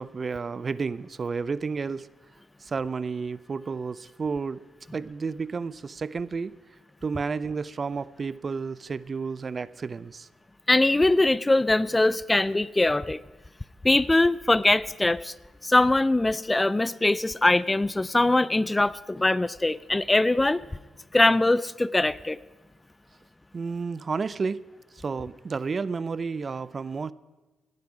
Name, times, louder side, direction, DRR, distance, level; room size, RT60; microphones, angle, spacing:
voice 1, 0.0-2.1 2.6-4.6 4.9-6.5 7.0-10.3 23.5-24.6 24.9-27.1, right 5 dB, 40° right, 19 dB, 0.4 m, -31 dB
voice 2, 10.7-13.2 13.8-15.3 15.6-20.6 21.1-22.4, left 2 dB, 20° left, 20 dB, 0.4 m, -22 dB
17.0 x 11.0 x 4.9 m, 1.2 s
supercardioid pair, 65°, 0 cm